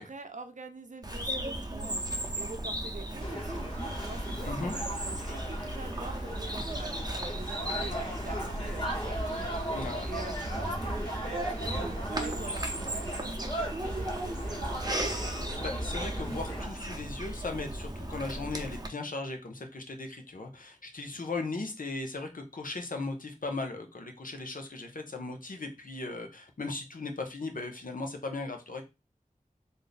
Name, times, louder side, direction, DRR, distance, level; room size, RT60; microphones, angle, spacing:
voice 1, 0.0-15.5, right 3 dB, 60° right, 7 dB, 0.6 m, -46 dB
Bird vocalization bird call bird song, 1.0-18.9, right 1 dB, 30° right, 0.8 m, -36 dB
sound 1, 3.2-16.7, right 1 dB, 35° left, 1.4 m, -37 dB
voice 2, 4.4-4.7 9.7-10.1 15.6-28.8, left 3 dB, 75° left, 4 dB, 0.8 m, -37 dB
3.4 x 2.7 x 4.0 m, 0.26 s
wide cardioid pair, 50°, 14 cm